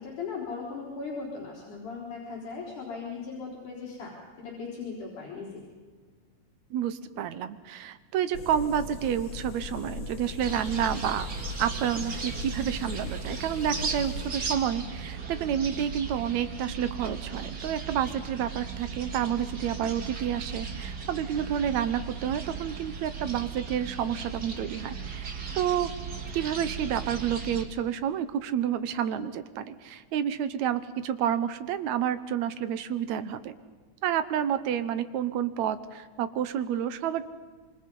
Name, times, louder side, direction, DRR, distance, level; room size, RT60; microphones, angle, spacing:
voice 1, 0.0-4.1 4.4-5.6, left 4 dB, 75° left, -5 dB, 5.6 m, -38 dB
voice 2, 6.7-11.3 11.6-25.9 26.3-33.5 34.0-37.2, right 9 dB, 75° right, 12 dB, 2.1 m, -29 dB
sound 1, 8.3-14.3, left 5 dB, 60° left, 1.3 m, -39 dB
sound 2, 10.4-27.6, right 5 dB, 35° right, 2.0 m, -37 dB
26.5 x 25.0 x 5.5 m, 1.5 s
omnidirectional pair, 3.6 m